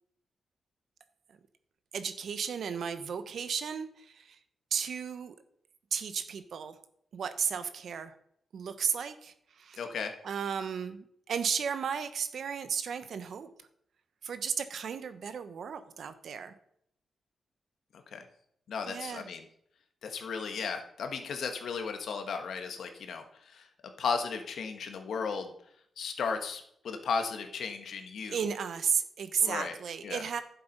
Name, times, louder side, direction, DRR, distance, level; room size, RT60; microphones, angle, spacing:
voice 1, 1.9-4.4 4.7-5.4 5.9-6.7 7.1-8.1 8.5-9.8 10.2-13.5 14.2-16.5 18.9-19.3 28.3-30.4, right 7 dB, 70° right, 11 dB, 1.1 m, -34 dB
voice 2, 9.8-10.1 18.1-18.2 18.7-19.5 20.0-23.7 24.0-25.5 26.0-28.4 29.4-29.7 30.0-30.2, left 5 dB, 75° left, 6 dB, 1.6 m, -35 dB
11.0 x 7.8 x 5.4 m, 0.71 s
cardioid pair, 110°, 0 cm